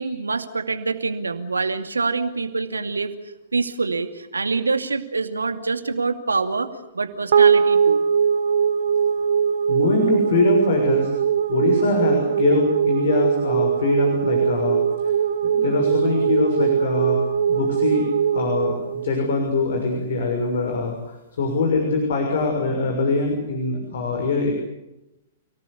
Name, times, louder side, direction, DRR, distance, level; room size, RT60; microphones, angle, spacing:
voice 1, 0.0-3.1 3.5-8.0, right 4 dB, 85° right, 8 dB, 2.4 m, -25 dB
sound 1, 7.3-19.8, right 7 dB, 65° right, 1.6 m, -21 dB
voice 2, 9.7-11.1 11.5-14.8 15.5-17.2 17.5-21.0 21.4-24.5, left 3 dB, 65° left, 3 dB, 6.4 m, -23 dB
29.5 x 18.5 x 8.4 m, 0.95 s
figure-of-eight pair, 110°, 0 cm